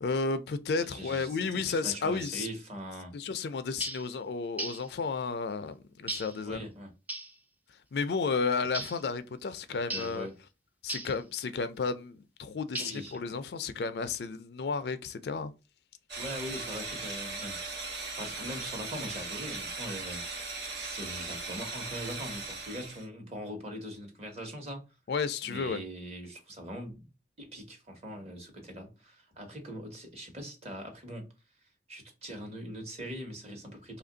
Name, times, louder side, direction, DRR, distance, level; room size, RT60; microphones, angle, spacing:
voice 1, 0.0-2.5 3.1-6.6 7.9-10.3 10.8-15.5 25.1-25.8, left 4 dB, 65° left, 0.4 m, -32 dB
voice 2, 0.8-3.1 6.4-6.9 9.7-10.3 12.8-13.4 16.2-17.6 18.2-20.5 20.8-24.8 25.4-27.1 27.4-31.3 31.6-34.0, equal, 35° right, 1.1 m, -42 dB
sound 1, 3.8-4.1 4.6-4.9 6.1-6.4 7.1-7.3 8.7-9.0 9.9-10.2 10.9-11.2 12.7-13.2, right 2 dB, 10° right, 0.4 m, -37 dB
sound 2, 16.1-23.1, right 3 dB, 75° right, 1.4 m, -38 dB
2.9 x 2.5 x 3.8 m
head